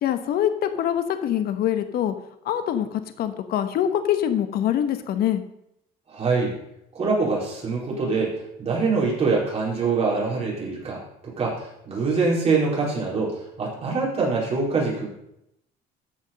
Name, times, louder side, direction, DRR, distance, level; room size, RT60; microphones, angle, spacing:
voice 1, 0.0-2.1 2.4-5.4, left 10 dB, 65° left, 9 dB, 1.1 m, -24 dB
voice 2, 6.1-6.5 6.9-15.1, right 4 dB, 35° right, -4 dB, 4.5 m, -24 dB
13.5 x 5.2 x 5.3 m, 0.79 s
cardioid pair, 120°, 17 cm